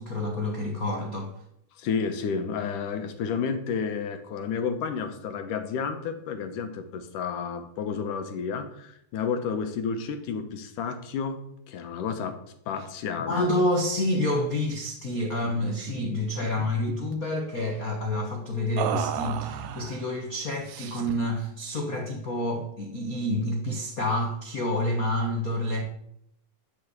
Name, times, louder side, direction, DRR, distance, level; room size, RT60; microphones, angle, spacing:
voice 1, 0.0-1.3 12.7-12.8 13.3-25.8, left 1 dB, 60° left, 2 dB, 0.9 m, -28 dB
voice 2, 1.7-11.4 11.7-12.4 12.7-13.4, left 6 dB, 75° left, 7 dB, 2.6 m, -31 dB
sound 1, 15.4-15.6 15.9-16.1 16.4-17.2 18.8-20.0 20.7-21.3, right 10 dB, 80° right, 2.4 m, -33 dB
12.0 x 5.5 x 8.0 m, 0.74 s
omnidirectional pair, 3.8 m